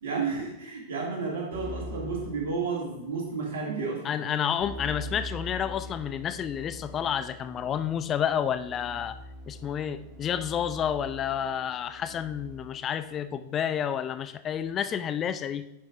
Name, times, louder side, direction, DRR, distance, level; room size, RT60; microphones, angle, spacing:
voice 1, 0.0-4.2, right 4 dB, 65° right, -2 dB, 2.1 m, -32 dB
Keyboard (musical), 1.5-3.2 4.6-13.0, equal, 35° right, 1.2 m, -43 dB
voice 2, 4.0-9.2 9.5-15.7, left 9 dB, 30° left, 11 dB, 0.4 m, -30 dB
9.6 x 5.2 x 2.5 m, 0.89 s
figure-of-eight pair, 95°, 0 cm